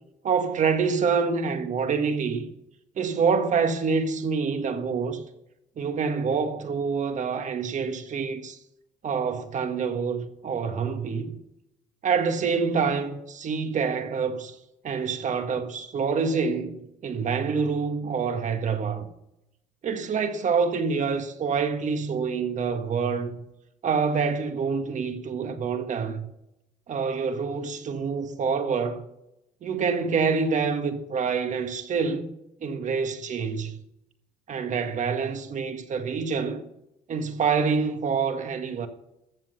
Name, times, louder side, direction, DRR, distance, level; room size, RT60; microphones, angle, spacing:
voice 1, 0.2-2.5 3.0-5.2 5.8-8.6 9.0-11.3 12.0-14.6 14.8-19.1 19.8-23.4 23.8-26.3 26.9-29.1 29.6-32.3 32.6-33.8 34.5-36.6 37.1-38.9, right 5 dB, 45° right, 1.7 m, -26 dB
14.0 x 7.5 x 6.7 m
cardioid pair, 110°, 17 cm